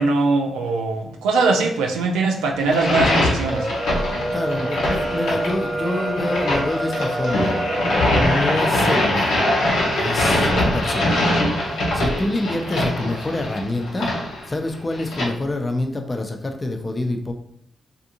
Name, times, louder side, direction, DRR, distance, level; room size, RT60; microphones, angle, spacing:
voice 1, 0.0-3.7, right 3 dB, 90° right, 1 dB, 0.3 m, -21 dB
sound 1, 2.6-15.2, left 1 dB, 80° left, 0.8 m, -22 dB
sound 2, 3.4-8.7, right 1 dB, 25° right, 0.8 m, -27 dB
voice 2, 4.3-7.5 8.2-9.4 9.9-11.2 11.9-14.1 14.5-17.3, left 2 dB, 35° left, 5 dB, 0.5 m, -26 dB
2.5 x 2.5 x 2.8 m, 0.65 s
supercardioid pair, 45°, 0 cm